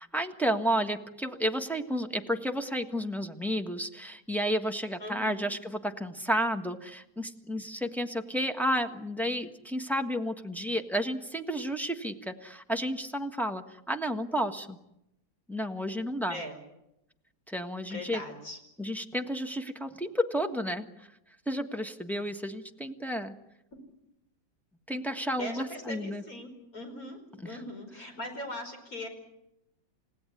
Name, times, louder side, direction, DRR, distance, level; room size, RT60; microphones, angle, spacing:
voice 1, 0.0-14.8 15.5-16.4 17.5-18.2 18.8-20.9 21.5-23.3 24.9-26.2 27.4-27.6, equal, ahead, 3 dB, 1.2 m, -31 dB
voice 2, 5.0-5.4 16.3-16.6 17.9-18.6 25.4-29.1, left 1 dB, 45° left, 4 dB, 5.4 m, -40 dB
29.5 x 16.5 x 9.9 m, 0.86 s
omnidirectional pair, 2.1 m